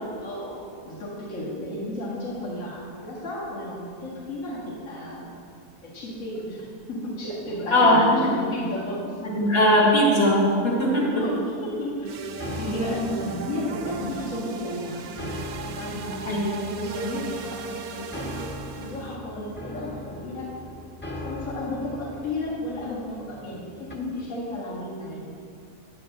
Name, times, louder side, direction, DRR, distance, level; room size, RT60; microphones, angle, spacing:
voice 1, 0.2-5.3 5.8-9.2 11.1-12.2 12.4-15.1 15.7-18.3 18.8-20.5 21.0-25.3, left 1 dB, 60° left, -7 dB, 2.2 m, -33 dB
voice 2, 7.7-8.2 9.3-11.3 16.2-16.4, left 1 dB, 85° left, -6 dB, 3.4 m, -19 dB
sound 1, 12.0-19.2, right 4 dB, 75° right, 1.2 m, -36 dB
sound 2, 12.2-24.0, left 1 dB, 10° left, 0.9 m, -40 dB
15.5 x 9.3 x 2.6 m, 2.4 s
omnidirectional pair, 1.6 m